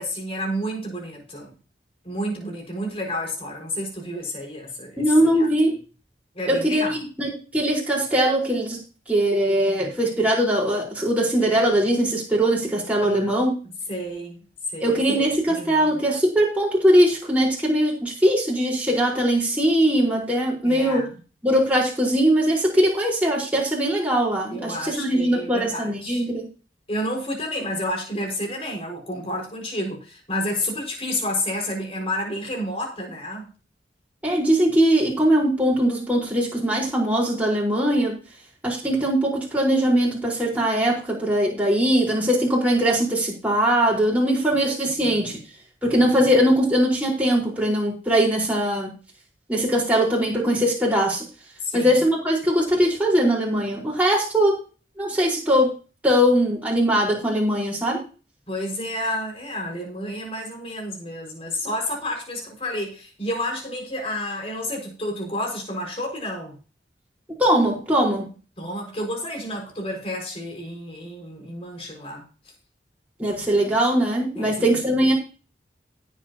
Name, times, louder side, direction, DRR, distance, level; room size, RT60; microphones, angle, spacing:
voice 1, 0.0-1.5 2.0-5.0 5.3-5.5 6.3-7.0 13.0-13.3 13.9-14.4 14.7-15.2 15.5-16.0 20.6-21.1 24.5-26.2 26.9-33.4 44.9-45.4 45.9-46.1 51.6-52.0 58.5-66.6 68.6-72.2 74.3-74.8, left 1 dB, 35° left, 1 dB, 5.7 m, -30 dB
voice 2, 5.0-5.8 6.5-8.8 9.1-13.5 14.8-21.1 21.4-26.5 34.2-38.2 38.6-45.4 45.8-48.9 49.5-51.2 51.7-54.5 55.0-55.7 56.0-58.0 67.4-68.3 73.2-75.1, equal, 10° right, -4 dB, 4.7 m, -21 dB
18.0 x 8.3 x 3.0 m, 0.35 s
head